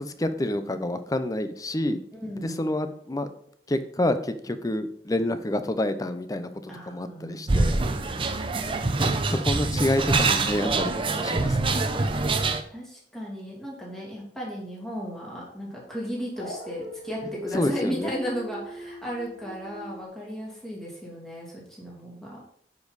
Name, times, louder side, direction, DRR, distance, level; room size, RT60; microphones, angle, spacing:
voice 1, 0.0-2.0 2.4-3.3 3.7-7.8 9.3-11.8 17.5-18.1, left 1 dB, 20° left, 10 dB, 0.6 m, -28 dB
voice 2, 2.1-2.7 6.7-7.7 8.1-8.7 12.1-12.2 12.7-22.4, equal, 5° left, -5 dB, 2.6 m, -35 dB
sound 1, 7.5-12.6, right 3 dB, 30° right, 0.6 m, -25 dB
Dog, 16.3-20.1, left 1 dB, 80° left, 3.4 m, -39 dB
9.5 x 5.4 x 4.0 m, 0.66 s
head